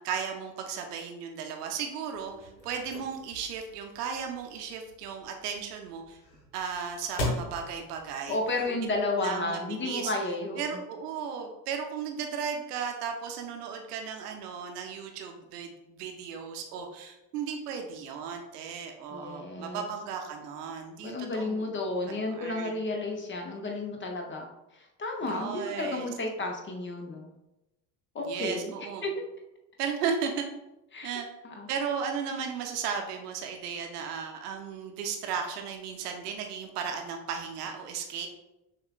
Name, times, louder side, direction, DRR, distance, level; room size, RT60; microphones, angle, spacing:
voice 1, 0.0-6.2 6.5-8.4 9.2-10.1 10.6-21.6 22.1-22.8 25.2-26.1 28.2-29.1 29.8-30.4 31.0-31.3 31.7-38.3, right 6 dB, 65° right, 4 dB, 0.7 m, -35 dB
sound 1, 2.1-9.2, left 1 dB, 85° left, 0.8 m, -40 dB
voice 2, 8.3-10.8 19.1-19.9 21.0-27.3 28.1-28.7 29.0-29.1 30.9-31.1 31.4-31.7, left 2 dB, 25° left, 2 dB, 0.6 m, -32 dB
6.3 x 2.4 x 2.3 m, 0.93 s
figure-of-eight pair, 50°, 49 cm